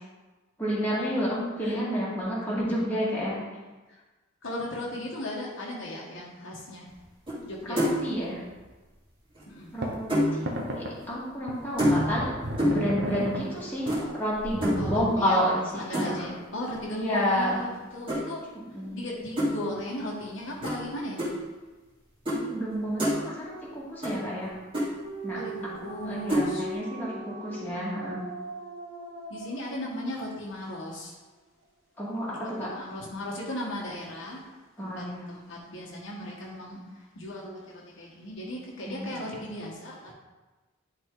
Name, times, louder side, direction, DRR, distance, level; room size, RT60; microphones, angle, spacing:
voice 1, 0.6-3.4 7.6-8.4 9.7-10.0 10.3-15.6 15.9-16.3 16.9-17.6 18.7-19.0 22.3-24.5 25.2-25.4 26.1-28.2 32.0-32.7 34.8-35.2 38.9-39.1, equal, 10° left, -8 dB, 2.2 m, -30 dB
voice 2, 4.4-6.9 7.4-7.8 9.5-9.7 14.8-18.4 18.7-21.3 25.3-26.7 29.3-31.2 32.4-34.5 34.8-40.1, left 1 dB, 65° left, -4 dB, 1.5 m, -37 dB
sound 1, 7.3-7.5 7.8-8.1 9.4-10.4 11.8-12.2 12.6-12.9 13.9-14.0 14.6-14.8 15.9-16.3 18.1-18.2 19.4-19.5 20.6-20.8 21.2-21.3 22.3-22.4 22.7-23.2 24.0-24.1 24.4-24.5 24.7-24.9 26.3-26.5, equal, 25° right, 2.5 m, -26 dB
sound 2, 9.8-9.9 10.5-10.9 11.5-13.5 13.9-14.1 14.3-15.1, right 1 dB, 55° right, 1.1 m, -34 dB
sound 3, 25.0-30.3, right 1 dB, 75° right, 1.2 m, -40 dB
11.0 x 4.1 x 3.8 m, 1.2 s
head